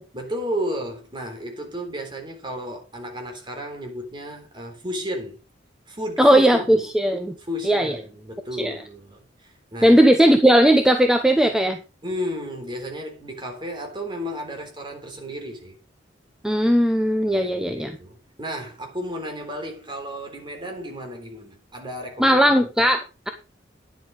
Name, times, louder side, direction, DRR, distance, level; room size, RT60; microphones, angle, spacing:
voice 1, 0.1-5.4 5.9-6.9 7.5-10.0 12.0-15.8 17.3-22.4 22.8-22.9, equal, 25° right, 3.7 m, -33 dB
voice 2, 6.2-7.4 7.6-8.0 8.6-8.8 9.8-11.8 16.4-18.0 22.2-23.3, equal, 5° right, 0.9 m, -17 dB
10.5 x 7.8 x 5.0 m
head